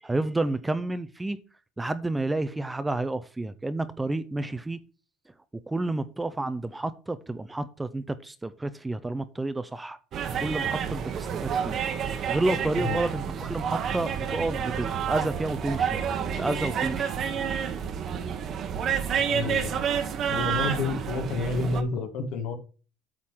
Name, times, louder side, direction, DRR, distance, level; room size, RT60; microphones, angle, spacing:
voice 1, 0.0-1.4 1.8-4.8 5.7-10.0 10.4-11.8 12.3-16.0 16.4-17.1, right 2 dB, 10° right, 0.5 m, -30 dB
sound 1, 10.1-21.8, right 7 dB, 40° right, 1.0 m, -29 dB
voice 2, 19.3-19.7 20.3-22.5, left 3 dB, 65° left, 1.7 m, -29 dB
8.6 x 3.7 x 6.1 m
cardioid pair, 135°, 0 cm